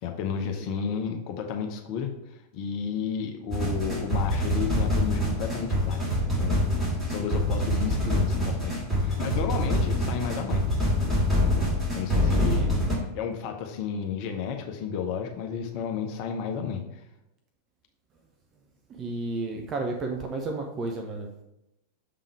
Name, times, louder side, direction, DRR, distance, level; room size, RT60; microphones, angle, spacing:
voice 1, 0.0-6.1 6.4-6.6 7.1-10.6 11.9-17.0, left 7 dB, 45° left, 4 dB, 0.8 m, -32 dB
sound 1, 3.5-13.0, left 1 dB, 5° right, 2.6 m, -25 dB
voice 2, 12.3-12.8 19.0-21.3, right 3 dB, 30° right, 2 dB, 0.7 m, -32 dB
6.7 x 3.7 x 4.6 m, 0.89 s
figure-of-eight pair, 90°, 0 cm